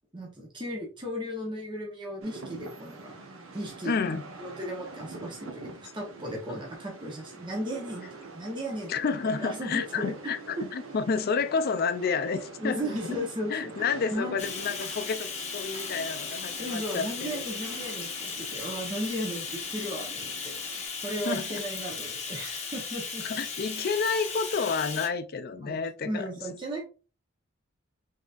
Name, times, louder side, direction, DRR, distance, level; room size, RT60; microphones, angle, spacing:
voice 1, 0.1-3.2 3.5-4.0 4.4-8.1 8.3-8.9 9.4-10.3 12.6-14.4 16.6-23.2 25.5-25.8 26.0-26.9, equal, 25° right, 0.9 m, -35 dB
Rain, 2.2-20.9, right 3 dB, 75° right, 0.9 m, -46 dB
voice 2, 3.8-4.2 8.9-13.2 13.5-17.4 21.3-21.6 23.2-26.3, left 5 dB, 50° left, 0.4 m, -30 dB
Bathtub (filling or washing), 14.4-25.1, left 5 dB, 35° left, 0.9 m, -36 dB
4.0 x 3.4 x 2.4 m
head